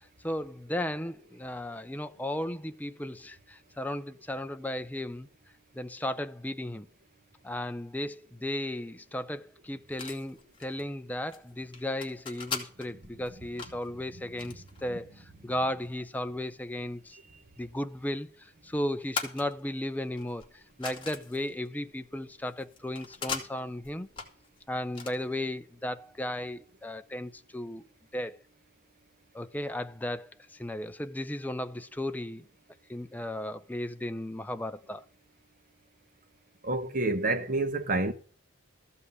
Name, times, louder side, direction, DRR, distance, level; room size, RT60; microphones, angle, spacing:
voice 1, 0.2-5.3 5.7-6.9 7.4-17.2 17.6-24.1 24.7-27.8 28.1-28.4 29.3-32.4 32.9-35.0, left 1 dB, 10° left, 0.5 m, -35 dB
sound 1, 9.9-25.5, left 5 dB, 25° left, 2.2 m, -42 dB
voice 2, 36.6-38.1, right 2 dB, 40° right, 1.2 m, -28 dB
14.5 x 5.6 x 7.9 m
head